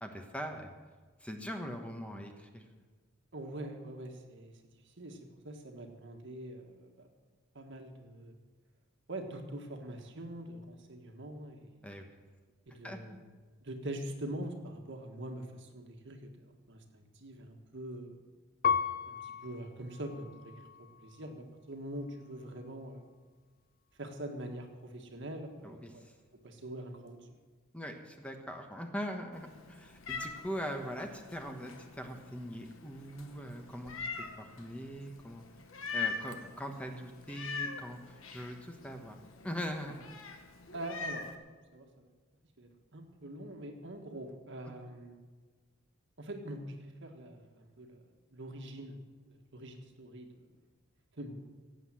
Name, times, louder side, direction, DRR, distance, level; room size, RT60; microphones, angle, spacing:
voice 1, 0.0-0.7 1.2-2.6 11.8-12.1 12.8-13.2 25.6-26.1 27.7-35.4 35.9-39.2 39.4-40.0 44.6-44.7, equal, 5° left, 4 dB, 1.2 m, -41 dB
voice 2, 3.3-4.5 5.0-7.1 7.5-8.3 9.1-11.8 12.7-13.1 13.6-16.2 16.5-18.2 19.1-23.0 24.0-26.1 26.4-27.3 40.7-41.4 41.7-42.1 42.6-45.2 46.2-48.0 48.3-49.0 49.2-50.5 51.2-51.4, right 1 dB, 60° right, 4 dB, 1.7 m, -44 dB
Piano, 18.6-21.4 22.0-22.7, left 6 dB, 45° left, 0.6 m, -36 dB
Meow, 29.3-41.4, left 4 dB, 80° left, 1.4 m, -43 dB
17.0 x 8.3 x 7.6 m, 1.4 s
head